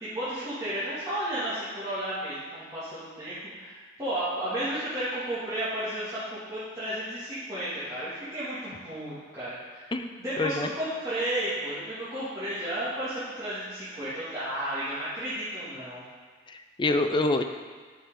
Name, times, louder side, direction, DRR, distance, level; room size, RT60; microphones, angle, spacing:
voice 1, 0.0-9.9 10.2-16.0, right 1 dB, 20° right, -14 dB, 2.3 m, -33 dB
voice 2, 10.4-10.7 16.5-17.4, left 2 dB, 25° left, 7 dB, 0.5 m, -26 dB
9.9 x 6.6 x 3.8 m, 1.5 s
head